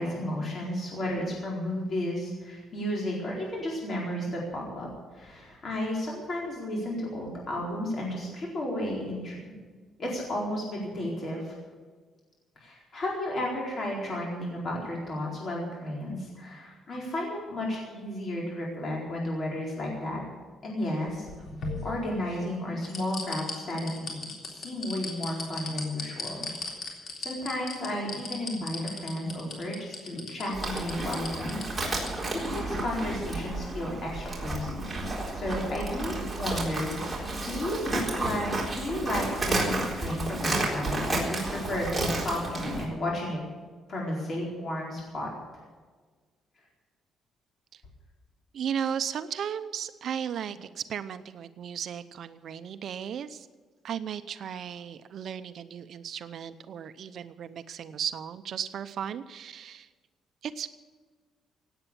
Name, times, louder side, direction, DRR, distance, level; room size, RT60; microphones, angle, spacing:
voice 1, 0.0-9.4 10.0-11.5 12.6-20.2 20.6-21.3 21.8-26.4 27.2-31.6 32.0-32.2 32.5-34.9 35.3-43.4 43.9-45.3, left 1 dB, 40° left, -3 dB, 4.4 m, -33 dB
sound 1, 21.1-22.4 22.8-32.1 32.4-32.5, left 3 dB, 55° left, 3.6 m, -37 dB
Livestock farm animals working animals, 30.5-42.8, right 2 dB, 10° right, 4.0 m, -31 dB
voice 2, 48.5-53.5 53.8-59.9 60.4-60.7, right 8 dB, 60° right, 12 dB, 0.7 m, -35 dB
17.0 x 9.0 x 8.5 m, 1.4 s
cardioid pair, 135°, 0 cm